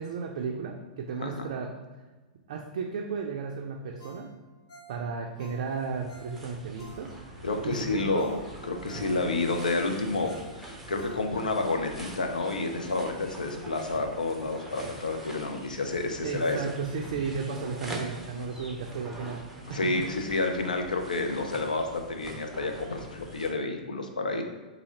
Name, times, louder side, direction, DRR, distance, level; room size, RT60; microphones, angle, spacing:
voice 1, 0.0-1.7 2.5-4.3 4.9-8.3 8.9-9.1 16.2-20.0, right 5 dB, 55° right, 1 dB, 0.4 m, -34 dB
Ringtone, 4.0-7.4 7.8-7.9 8.2-11.6 12.0-12.1, right 1 dB, 45° left, 0.9 m, -51 dB
sound 1, 5.5-23.5, right 1 dB, 5° right, 0.6 m, -44 dB
voice 2, 7.4-8.4 8.7-16.6 19.7-24.4, left 3 dB, 75° left, 5 dB, 0.4 m, -30 dB
4.0 x 2.7 x 2.8 m, 1.2 s
figure-of-eight pair, 100°, 4 cm